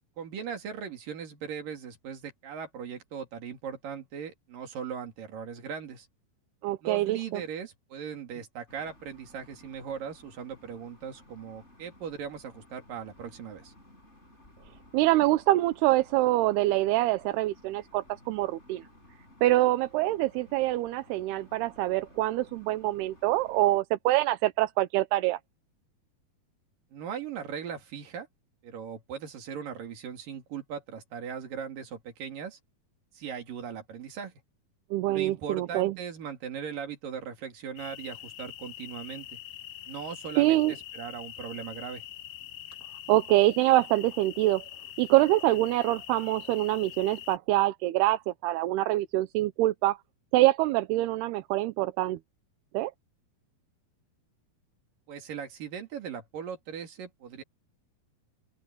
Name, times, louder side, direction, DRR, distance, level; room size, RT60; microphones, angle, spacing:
voice 1, 0.2-6.1 6.8-13.7 26.9-28.3 28.6-32.6 33.1-34.3 35.1-39.4 39.9-42.0 55.1-57.4, right 7 dB, 60° right, 4.4 m, -39 dB
voice 2, 6.6-7.4 14.9-18.8 19.4-25.4 34.9-36.0 40.4-40.7 43.1-44.6 45.0-50.0 50.3-52.2 52.7-52.9, right 17 dB, 85° right, 2.8 m, -25 dB
sound 1, 8.7-23.8, left 1 dB, 15° left, 7.0 m, -56 dB
sound 2, 37.8-47.4, left 13 dB, 70° left, 2.8 m, -44 dB
open air
omnidirectional pair, 4.5 m